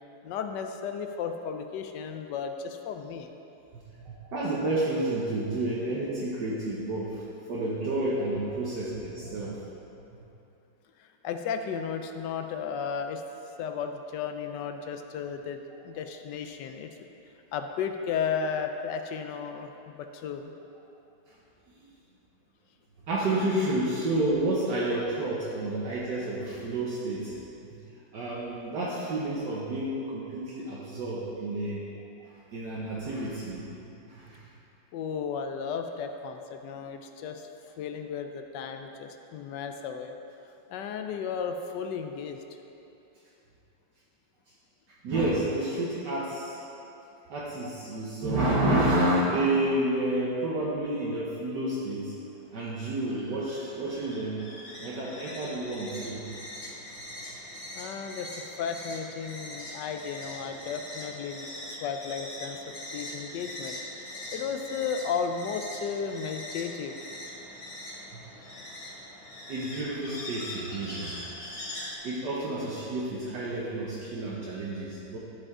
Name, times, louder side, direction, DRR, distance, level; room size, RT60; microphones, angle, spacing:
voice 1, 0.2-3.3 11.0-17.1 17.5-20.5 34.9-37.5 37.8-40.1 40.7-42.4 57.7-62.6 62.9-64.0 64.3-66.9, left 6 dB, 75° left, 6 dB, 1.1 m, -34 dB
voice 2, 4.0-7.2 7.5-9.6 23.1-27.4 28.1-31.8 32.5-33.6 34.1-34.4 45.0-46.6 47.3-52.1 52.5-54.5 54.8-56.2 68.1-68.2 69.5-71.2 72.0-75.2, right 1 dB, 65° right, -6 dB, 1.5 m, -30 dB
sound 1, 52.2-72.0, left 1 dB, 40° left, 2.2 m, -42 dB
12.0 x 5.0 x 3.6 m, 2.8 s
omnidirectional pair, 2.1 m